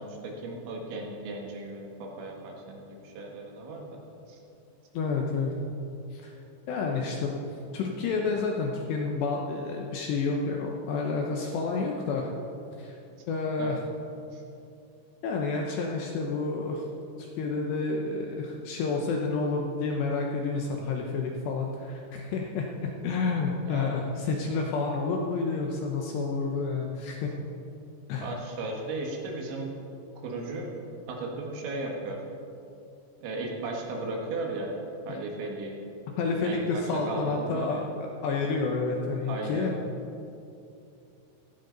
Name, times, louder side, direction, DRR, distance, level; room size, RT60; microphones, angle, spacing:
voice 1, 0.0-4.0 4.3-4.4 8.1-8.2 13.6-13.8 14.3-14.4 23.7-24.0 28.2-29.7 30.2-30.7 31.1-32.2 33.2-34.7 35.1-35.7 36.4-37.9 38.4-38.5 39.3-39.8, right 2 dB, 70° right, 0 dB, 3.7 m, -36 dB
voice 2, 4.9-5.5 6.1-6.3 6.7-7.4 7.7-12.3 12.8-13.0 13.3-13.8 15.2-16.9 17.2-27.3 28.1-28.3 35.1-35.2 36.2-39.7, left 4 dB, 75° left, 0 dB, 2.7 m, -29 dB
16.5 x 14.5 x 4.0 m, 2.7 s
omnidirectional pair, 5.9 m